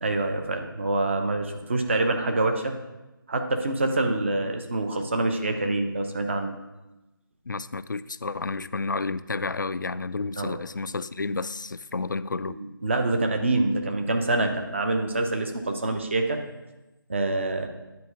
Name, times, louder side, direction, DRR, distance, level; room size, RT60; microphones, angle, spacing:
voice 1, 0.0-2.7 3.3-6.5 10.4-10.6 12.5-16.4 17.1-17.7, right 2 dB, 30° right, 5 dB, 0.8 m, -26 dB
voice 2, 7.5-12.6, left 3 dB, 55° left, 14 dB, 0.4 m, -31 dB
9.6 x 4.4 x 6.3 m, 1.0 s
figure-of-eight pair, 155°, 12 cm